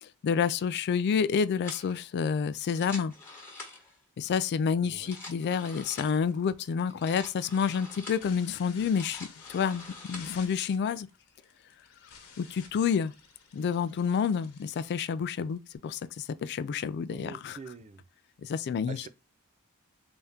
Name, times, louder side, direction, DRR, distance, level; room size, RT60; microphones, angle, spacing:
voice 1, 0.0-3.1 4.2-11.1 12.4-13.1 13.5-17.6 18.4-19.1, left 6 dB, 50° left, 0.3 m, -29 dB
sound 1, 1.6-1.9 2.6-4.0 4.9-6.2 6.9-8.3 8.8-10.4, left 3 dB, 10° left, 1.3 m, -45 dB
voice 2, 4.8-5.1 17.1-18.0 18.9-19.1, right 5 dB, 30° right, 0.4 m, -45 dB
sound 2, 6.2-15.8, left 6 dB, 85° left, 1.0 m, -53 dB
3.5 x 2.7 x 3.4 m
head